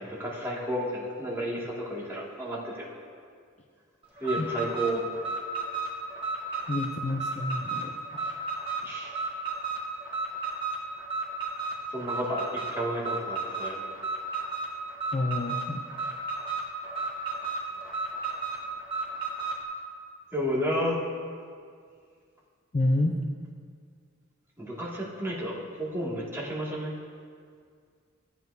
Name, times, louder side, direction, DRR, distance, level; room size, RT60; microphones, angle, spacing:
voice 1, 0.0-2.8 4.2-5.0 8.8-9.2 11.9-13.9 20.3-21.0 24.6-26.9, equal, 10° right, -6 dB, 2.1 m, -32 dB
Alarm, 4.2-19.6, right 3 dB, 30° right, 1.8 m, -33 dB
voice 2, 6.7-8.3 15.1-15.8 22.7-23.2, left 2 dB, 35° left, 2 dB, 0.5 m, -29 dB
15.0 x 9.2 x 2.7 m, 2.1 s
head